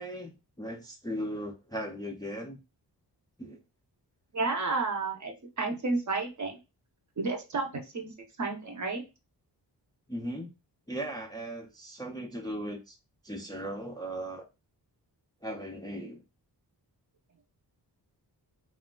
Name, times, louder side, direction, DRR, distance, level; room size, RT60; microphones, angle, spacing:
voice 1, 0.0-2.6 3.4-3.6 10.1-10.5 10.9-13.0 13.2-14.4 15.4-16.2, equal, 10° left, 0.4 m, -37 dB
voice 2, 4.3-6.6 7.2-9.0, right 3 dB, 45° right, 0.8 m, -31 dB
3.4 x 2.4 x 2.2 m
wide cardioid pair, 110°, 41 cm